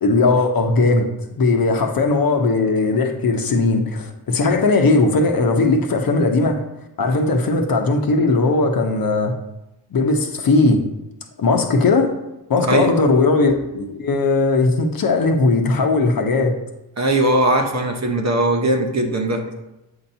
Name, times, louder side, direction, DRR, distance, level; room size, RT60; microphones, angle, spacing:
voice 1, 0.0-1.1 1.4-6.6 7.0-9.3 9.9-10.8 11.4-12.1 12.5-16.6, left 3 dB, 50° left, 3 dB, 1.1 m, -18 dB
voice 2, 17.0-19.4, right 1 dB, 35° right, 3 dB, 1.1 m, -19 dB
7.9 x 2.9 x 5.5 m, 0.93 s
cardioid pair, 75°, 45 cm